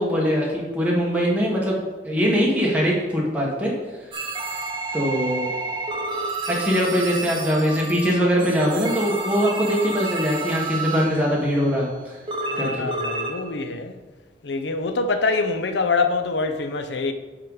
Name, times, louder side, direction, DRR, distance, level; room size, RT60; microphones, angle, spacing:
voice 1, 0.0-1.8 2.0-3.7 4.9-5.5 6.5-12.1 12.6-12.9, equal, 10° right, 1.4 m, -22 dB
sound 1, 4.1-11.3 12.3-13.4, right 3 dB, 25° right, 0.8 m, -30 dB
voice 2, 12.5-14.0 14.4-17.1, left 3 dB, 75° left, 0.6 m, -25 dB
9.1 x 3.8 x 4.9 m
head